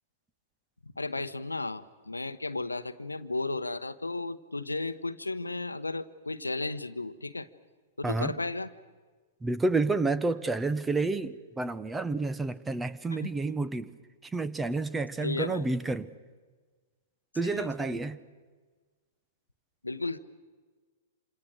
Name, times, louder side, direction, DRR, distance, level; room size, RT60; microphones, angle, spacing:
voice 1, 1.0-7.5 8.0-8.7 13.1-13.3 15.2-15.6 17.4-18.1 19.8-20.2, left 2 dB, 90° left, 13 dB, 1.0 m, -34 dB
voice 2, 8.0-8.4 9.4-13.9 14.2-16.1 17.4-18.2, right 3 dB, 10° right, 15 dB, 1.1 m, -30 dB
27.5 x 27.0 x 6.4 m, 1.4 s
figure-of-eight pair, 105°, 0 cm